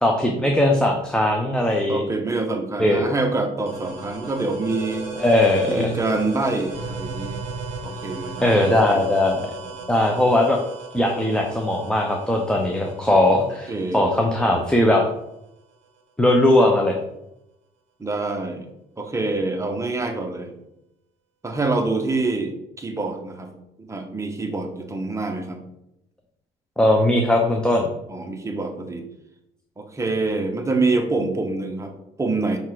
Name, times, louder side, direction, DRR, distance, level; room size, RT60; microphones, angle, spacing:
voice 1, 0.0-2.0 2.8-3.0 5.2-5.9 8.4-9.5 9.9-10.6 10.9-15.0 16.2-16.9 26.8-27.9, left 1 dB, 5° left, 1 dB, 0.7 m, -19 dB
voice 2, 1.9-5.1 5.7-7.4 7.8-8.5 8.9-9.0 9.6-9.8 13.7-14.1 18.0-18.7 19.0-20.5 21.4-23.5 23.8-25.6 28.1-29.0 29.8-32.6, right 3 dB, 15° right, 4 dB, 1.0 m, -26 dB
sound 1, 3.7-15.0, right 3 dB, 40° right, 2.0 m, -36 dB
5.6 x 3.7 x 4.7 m, 0.85 s
cardioid pair, 110°, 17 cm